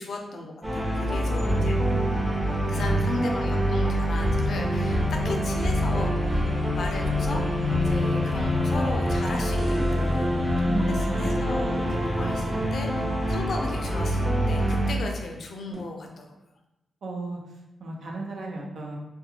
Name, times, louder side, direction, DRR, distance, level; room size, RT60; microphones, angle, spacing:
voice 1, 0.0-1.8 2.7-16.3, left 2 dB, 65° left, 2 dB, 0.4 m, -36 dB
sound 1, 0.6-14.9, equal, 15° right, 0.7 m, -25 dB
voice 2, 1.4-1.8 2.6-3.3 10.6-11.4 17.0-17.4 17.8-19.0, right 2 dB, 70° right, -1 dB, 0.5 m, -34 dB
sound 2, 9.6-12.9 15.7-15.8, right 1 dB, 45° right, 0.9 m, -41 dB
2.3 x 2.2 x 2.9 m, 0.95 s
wide cardioid pair, 110°, 0 cm